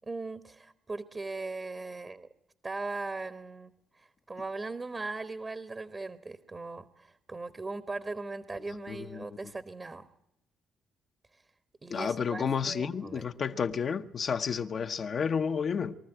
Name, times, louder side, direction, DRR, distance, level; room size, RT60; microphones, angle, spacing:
voice 1, 0.1-2.3 2.6-10.1 11.3-11.4 11.8-13.2, right 3 dB, 30° right, 1.2 m, -39 dB
voice 2, 8.9-9.4 11.9-15.9, left 6 dB, 50° left, 1.0 m, -31 dB
23.5 x 13.5 x 9.0 m
cardioid pair, 90°, 0 cm